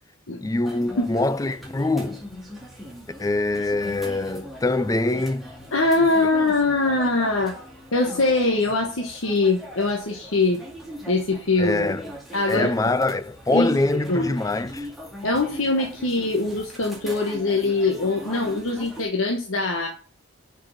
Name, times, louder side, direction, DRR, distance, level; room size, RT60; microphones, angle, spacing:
voice 1, 0.4-2.2 3.2-5.5 11.6-12.1 12.5-14.9, left 2 dB, 15° left, 0.4 m, -24 dB
sound 1, 0.6-19.0, equal, ahead, 2.0 m, -40 dB
voice 2, 5.7-7.6 7.9-10.6 11.1-11.9 12.3-12.7 13.5-13.7 14.1-14.3 15.2-19.9, left 3 dB, 80° left, 1.2 m, -22 dB
6.4 x 5.4 x 6.4 m
head